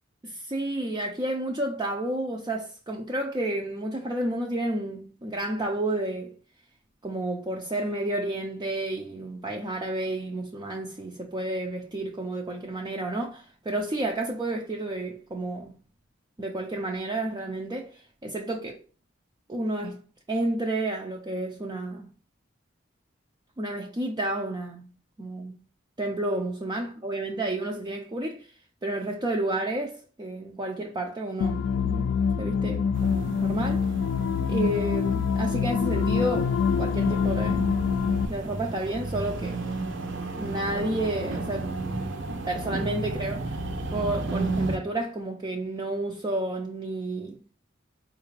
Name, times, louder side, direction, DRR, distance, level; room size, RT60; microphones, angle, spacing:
voice 1, 0.2-6.3 7.0-15.7 16.4-18.8 19.5-20.0 20.3-22.1 23.6-24.9 25.2-25.6 26.0-28.5 28.8-32.1 32.4-33.9 34.5-37.7 38.3-39.6 40.4-41.7 42.5-43.6 43.9-47.4, right 1 dB, 20° right, 0.4 m, -31 dB
sound 1, 31.4-38.3, left 6 dB, 65° left, 0.3 m, -25 dB
sound 2, 32.9-44.8, right 2 dB, 70° right, 0.6 m, -33 dB
4.2 x 2.4 x 3.1 m
head